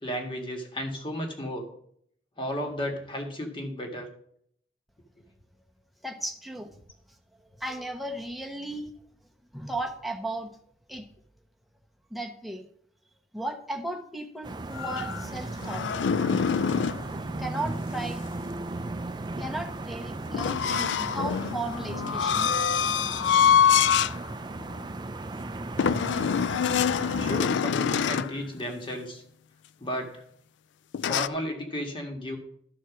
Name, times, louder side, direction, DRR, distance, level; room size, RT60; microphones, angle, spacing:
voice 1, 0.0-1.7 2.4-4.1 27.2-29.2 29.8-30.2 31.1-32.4, equal, 25° left, 3 dB, 1.7 m, -33 dB
voice 2, 6.0-6.8 7.4-8.9 9.5-10.6 10.9-11.1 12.1-12.6 13.3-15.8 17.4-18.2 19.4-22.5, right 1 dB, ahead, 2 dB, 1.0 m, -35 dB
sound 1, 14.4-27.5, right 2 dB, 25° right, 0.4 m, -36 dB
sound 2, 14.7-17.1 20.3-24.2 24.6-24.8 25.8-28.4 30.9-31.3, left 7 dB, 75° left, 0.3 m, -25 dB
12.5 x 4.5 x 6.1 m, 0.68 s
head